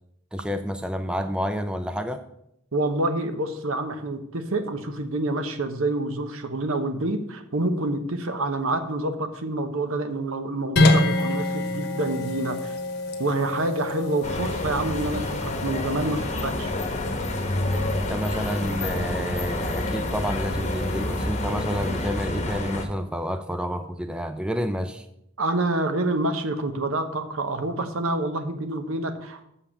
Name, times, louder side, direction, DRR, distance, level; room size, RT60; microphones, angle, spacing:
voice 1, 0.3-2.2 17.9-25.0, equal, 5° right, 8 dB, 0.4 m, -29 dB
voice 2, 2.7-12.7 13.2-16.7 25.4-29.4, right 2 dB, 80° right, 8 dB, 1.0 m, -27 dB
sound 1, 10.8-21.3, left 2 dB, 50° left, 1.2 m, -28 dB
sound 2, 14.2-22.9, left 1 dB, 35° left, 1.1 m, -28 dB
6.8 x 5.7 x 7.2 m, 0.78 s
head